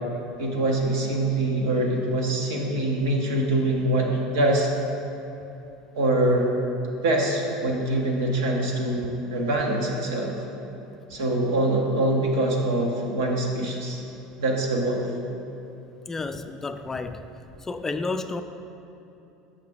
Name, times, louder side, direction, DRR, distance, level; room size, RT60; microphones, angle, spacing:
voice 1, 0.4-4.7 5.9-6.5 7.0-10.4 11.1-14.0 14.4-15.1, right 1 dB, 85° right, -1 dB, 1.0 m, -24 dB
voice 2, 16.1-17.3 17.6-18.4, left 3 dB, 20° left, 8 dB, 0.3 m, -31 dB
6.7 x 5.7 x 3.5 m, 2.9 s
hypercardioid pair, 90°, 2 cm